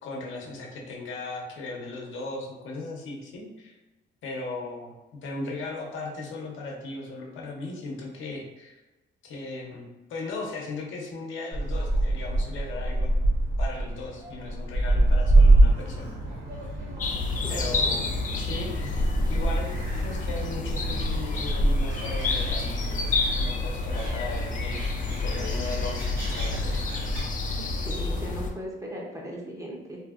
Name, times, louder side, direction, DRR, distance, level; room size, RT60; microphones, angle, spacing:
voice 1, 0.0-3.8 4.2-4.9 5.2-8.8 9.2-13.1 13.6-16.2 17.5-18.1 18.4-19.8 20.0-26.8, left 3 dB, 75° left, -1 dB, 0.7 m, -37 dB
Gull seagull, 11.5-27.2, right 1 dB, 75° right, 1.0 m, -26 dB
sound 1, 17.0-28.5, left 3 dB, 40° left, 0.4 m, -29 dB
voice 2, 17.4-18.0 27.6-30.0, equal, 15° right, -1 dB, 0.6 m, -38 dB
2.7 x 2.6 x 2.4 m, 1.1 s
cardioid pair, 90°, 20 cm